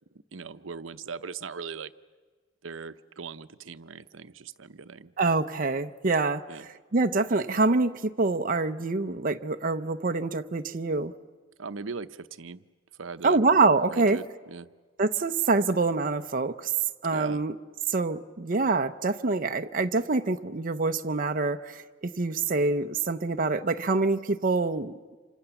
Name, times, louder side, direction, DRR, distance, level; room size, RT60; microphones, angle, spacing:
voice 1, 0.3-1.9 2.6-5.1 6.5-6.7 11.6-12.6 13.0-13.4 13.9-14.7 17.1-17.4, right 5 dB, 80° right, 12 dB, 0.8 m, -39 dB
voice 2, 5.2-11.1 13.2-14.2 15.0-16.7 17.0-17.5 17.9-24.9, right 3 dB, 45° right, 7 dB, 0.7 m, -26 dB
27.5 x 25.5 x 7.1 m, 1.4 s
head